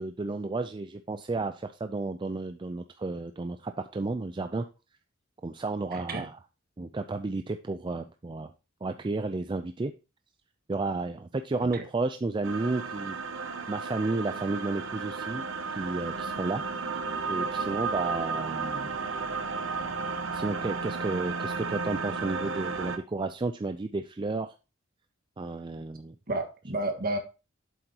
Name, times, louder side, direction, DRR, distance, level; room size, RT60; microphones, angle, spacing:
voice 1, 0.0-4.7 5.4-6.4 6.8-8.5 8.8-9.9 10.7-15.5 15.7-18.9 20.3-24.5 25.4-26.2, right 3 dB, 25° right, 0.4 m, -32 dB
voice 2, 5.9-6.3 11.7-11.8 26.3-27.2, right 2 dB, 50° right, 1.6 m, -31 dB
sound 1, 12.4-23.0, right 4 dB, 75° right, 1.0 m, -33 dB
7.9 x 7.8 x 2.9 m
head